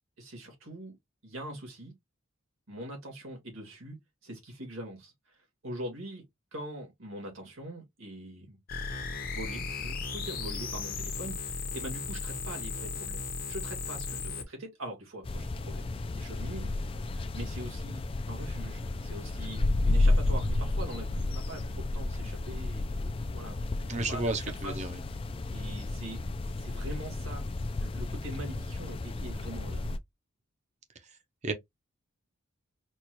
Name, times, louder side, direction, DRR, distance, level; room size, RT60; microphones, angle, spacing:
voice 1, 0.2-1.0 1.2-1.9 2.7-4.0 4.2-5.1 5.6-6.2 6.5-8.6 9.2-16.7 17.1-24.3 24.6-24.9 25.5-26.2 26.6-27.4 27.8-29.9, right 1 dB, 80° right, 2.1 m, -43 dB
sound 1, 8.7-14.4, left 4 dB, 45° left, 0.8 m, -36 dB
sound 2, 15.2-30.0, left 2 dB, 25° left, 0.3 m, -32 dB
voice 2, 23.9-25.0 31.4-31.5, right 2 dB, 35° right, 0.6 m, -32 dB
4.3 x 2.3 x 2.9 m
head